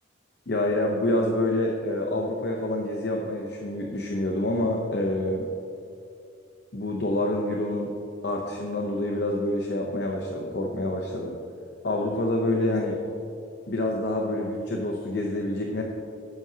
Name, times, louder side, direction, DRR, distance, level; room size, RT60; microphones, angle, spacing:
voice 1, 0.5-5.5 6.7-8.0 8.2-11.4 11.8-13.0 13.7-15.8, left 1 dB, 55° left, 1 dB, 0.8 m, -27 dB
13.5 x 9.7 x 2.9 m, 2.7 s
head